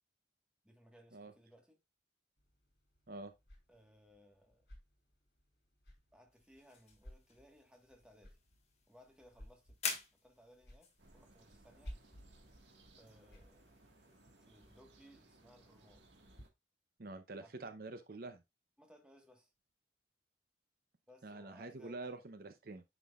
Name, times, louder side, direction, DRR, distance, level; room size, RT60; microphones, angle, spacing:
voice 1, 0.6-1.8 3.7-4.7 6.1-8.4 8.9-9.8 10.1-12.0 13.0-13.7 14.4-16.1 17.4-17.6 18.8-19.5 21.1-22.2, equal, 5° right, 1.4 m, -63 dB
sound 1, 2.4-16.4, equal, 65° left, 3.2 m, -59 dB
sound 2, 6.3-14.8, left 5 dB, 35° left, 1.5 m, -49 dB
sound 3, 11.0-16.5, right 2 dB, 80° right, 1.6 m, -64 dB
voice 2, 17.0-18.4 21.2-22.8, right 2 dB, 55° right, 0.7 m, -46 dB
9.3 x 6.0 x 2.4 m
head